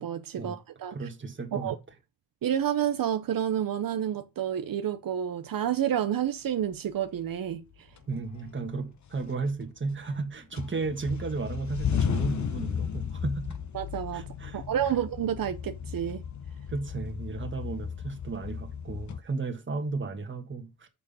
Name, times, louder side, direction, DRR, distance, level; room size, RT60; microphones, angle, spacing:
voice 1, 0.0-0.9 1.5-1.7 2.4-7.6 13.7-14.3 14.5-16.2, right 10 dB, 75° right, 0.7 m, -29 dB
voice 2, 0.9-1.7 8.1-13.6 14.1-14.6 16.7-20.9, right 3 dB, 35° right, 1.5 m, -34 dB
sound 1, 7.3-7.4 8.0-8.7 9.1-10.2 10.5-19.2, left 7 dB, 55° left, 0.9 m, -34 dB
6.6 x 5.6 x 5.2 m
wide cardioid pair, 130°, 34 cm